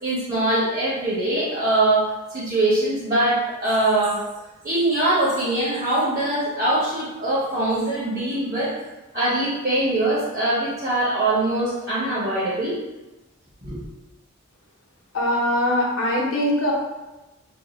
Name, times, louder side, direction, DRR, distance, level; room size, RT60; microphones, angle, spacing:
voice 1, 0.0-4.2 4.6-8.7 9.1-12.8 13.6-13.8, right 1 dB, 40° right, -10 dB, 1.0 m, -22 dB
voice 2, 15.1-16.7, left 1 dB, 70° left, -3 dB, 0.8 m, -22 dB
2.7 x 2.4 x 3.8 m, 1.1 s
head